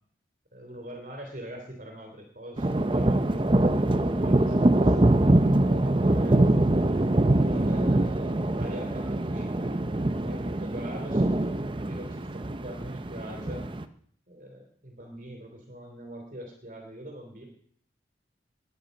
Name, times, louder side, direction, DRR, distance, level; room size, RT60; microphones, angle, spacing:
voice 1, 0.5-6.4 7.3-9.8 10.2-13.7 14.3-17.5, equal, 45° right, 2 dB, 3.1 m, -43 dB
sound 1, 2.6-13.8, right 1 dB, 30° right, 0.7 m, -24 dB
19.5 x 10.5 x 5.3 m, 0.62 s
head